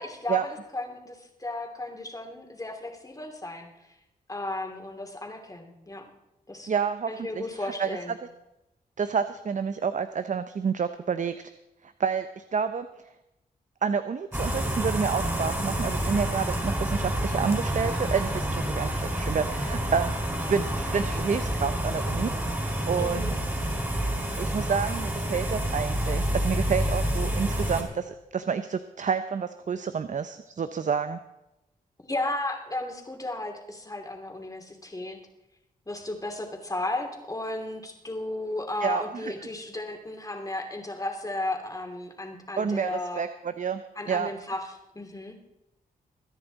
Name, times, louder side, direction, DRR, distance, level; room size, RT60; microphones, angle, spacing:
voice 1, 0.0-3.7 4.3-6.0 6.5-6.7 7.1-8.1 23.0-23.4 32.0-35.2 35.9-43.2 44.0-45.4, left 2 dB, 20° left, 3 dB, 2.8 m, -34 dB
voice 2, 6.7-8.2 9.0-11.5 11.8-12.9 13.8-20.2 20.5-22.3 22.9-23.3 24.4-31.2 38.8-39.3 42.6-43.8 44.1-44.3, right 6 dB, 50° right, 11 dB, 0.7 m, -29 dB
sound 1, 14.3-27.8, right 1 dB, 15° right, 4.4 m, -28 dB
22.0 x 9.8 x 4.1 m, 0.91 s
cardioid pair, 65°, 16 cm